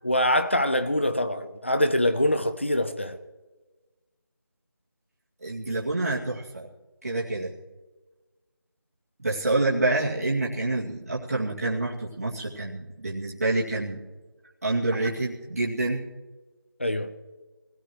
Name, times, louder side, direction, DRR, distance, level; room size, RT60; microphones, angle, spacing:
voice 1, 0.0-3.2 16.8-17.1, left 1 dB, 30° left, 0.6 m, -24 dB
voice 2, 5.4-6.7 7.0-7.5 9.2-14.0 14.6-16.0, right 2 dB, 40° right, 2.3 m, -27 dB
23.5 x 17.0 x 3.1 m
figure-of-eight pair, 180°, 12 cm